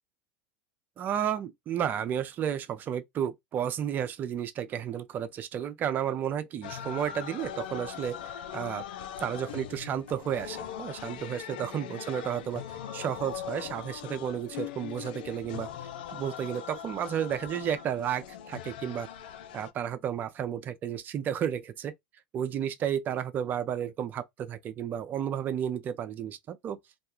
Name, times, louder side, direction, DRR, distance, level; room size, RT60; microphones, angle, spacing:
voice 1, 1.0-8.9 9.2-19.1 19.5-21.9 22.3-26.8, right 9 dB, 35° right, 0.4 m, -32 dB
sound 1, 6.6-19.7, left 10 dB, 70° left, 0.4 m, -41 dB
2.4 x 2.2 x 2.9 m
hypercardioid pair, 85°, 5 cm